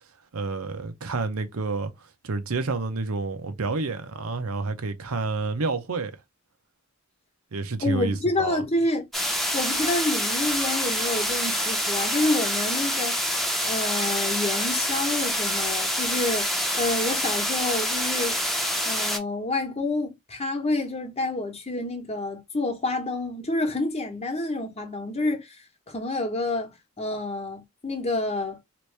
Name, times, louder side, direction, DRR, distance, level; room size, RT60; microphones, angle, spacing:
voice 1, 0.3-6.1 7.5-8.6, right 3 dB, 80° right, 0.7 m, -29 dB
voice 2, 7.8-9.1 9.5-16.5 16.7-18.4 18.8-25.6 25.9-28.6, left 2 dB, 30° left, 0.9 m, -28 dB
sound 1, 9.1-19.2, equal, ahead, 0.7 m, -26 dB
3.0 x 2.6 x 3.2 m
head